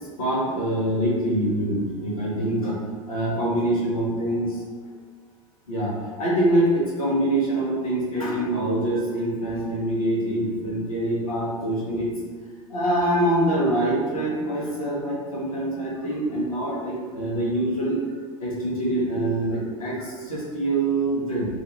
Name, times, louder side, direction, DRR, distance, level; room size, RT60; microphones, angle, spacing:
voice 1, 0.2-2.8 3.1-4.6 5.7-5.9 6.2-12.1 12.7-18.0 18.4-21.5, right 1 dB, 85° left, -7 dB, 0.7 m, -24 dB
2.4 x 2.3 x 2.8 m, 1.5 s
figure-of-eight pair, 80°, 18 cm